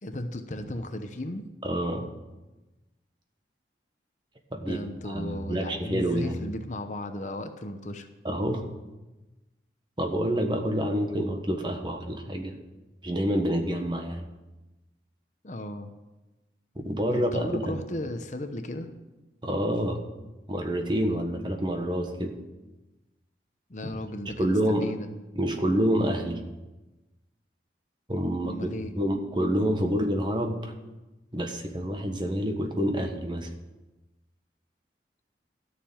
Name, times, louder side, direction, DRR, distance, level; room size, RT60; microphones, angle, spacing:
voice 1, 0.0-1.4 4.6-8.1 15.4-15.9 17.1-18.9 23.7-25.1 28.4-28.9, left 1 dB, 40° left, 7 dB, 0.9 m, -35 dB
voice 2, 1.6-2.1 4.5-6.3 8.2-8.6 10.0-12.5 13.0-14.3 16.7-17.8 19.4-20.0 20.5-22.3 24.4-24.9 25.3-26.4 28.1-30.7 31.3-33.5, equal, 25° right, 4 dB, 1.3 m, -28 dB
13.0 x 6.9 x 8.9 m, 1.1 s
head